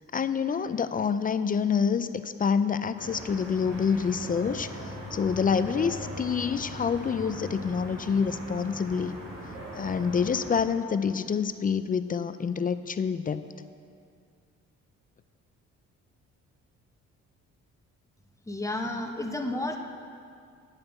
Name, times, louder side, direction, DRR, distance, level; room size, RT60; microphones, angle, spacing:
voice 1, 0.1-9.1 9.8-13.4, left 6 dB, 30° left, 12 dB, 0.4 m, -27 dB
sound 1, 3.0-10.6, equal, 55° right, 3.0 m, -40 dB
voice 2, 18.5-19.8, left 1 dB, 10° left, 4 dB, 1.0 m, -31 dB
9.9 x 5.6 x 7.9 m, 2.3 s
cardioid pair, 90°, 30 cm